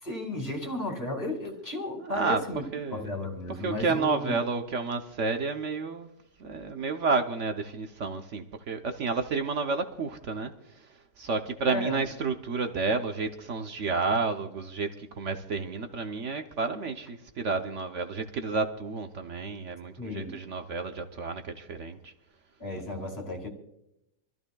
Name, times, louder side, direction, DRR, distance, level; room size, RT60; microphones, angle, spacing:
voice 1, 0.0-2.6 2.9-4.4 11.7-12.0 20.0-20.4 22.6-23.5, left 1 dB, 25° left, 2.2 m, -34 dB
voice 2, 2.0-2.4 2.7-3.1 3.6-6.1 6.4-10.5 10.8-10.9 11.2-22.1, right 4 dB, 55° right, 0.9 m, -30 dB
26.5 x 14.0 x 2.3 m
omnidirectional pair, 1.8 m